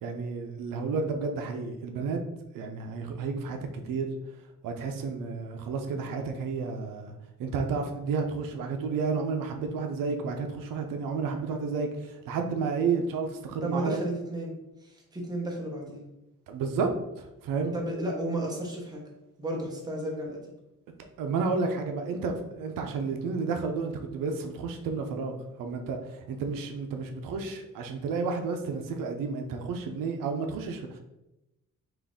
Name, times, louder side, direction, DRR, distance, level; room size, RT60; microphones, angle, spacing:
voice 1, 0.0-2.2 2.5-4.1 4.6-14.0 16.5-16.9 17.2-17.7 20.9-31.0, right 4 dB, 85° right, 4 dB, 0.6 m, -31 dB
voice 2, 13.6-14.5 14.8-16.0 17.7-19.0 19.4-20.4, right 1 dB, 10° right, -1 dB, 0.8 m, -33 dB
3.9 x 2.5 x 3.5 m, 0.94 s
cardioid pair, 150°, 32 cm